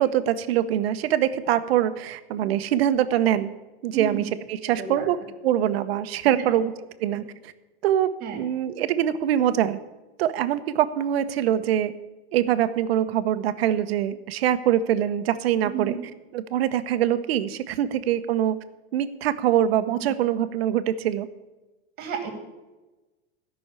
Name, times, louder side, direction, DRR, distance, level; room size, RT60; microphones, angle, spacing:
voice 1, 0.0-3.5 3.8-4.2 4.5-5.2 5.4-6.7 7.0-7.5 7.8-9.8 10.2-11.9 12.3-16.0 16.3-18.5 18.9-21.3, right 11 dB, 70° right, 12 dB, 1.0 m, -23 dB
voice 2, 3.9-4.3 4.8-5.1 7.1-7.2 8.2-8.4 15.7-16.0 22.0-22.3, right 7 dB, 30° right, 4 dB, 2.7 m, -31 dB
13.5 x 6.2 x 8.2 m, 1.1 s
supercardioid pair, 160°, 32 cm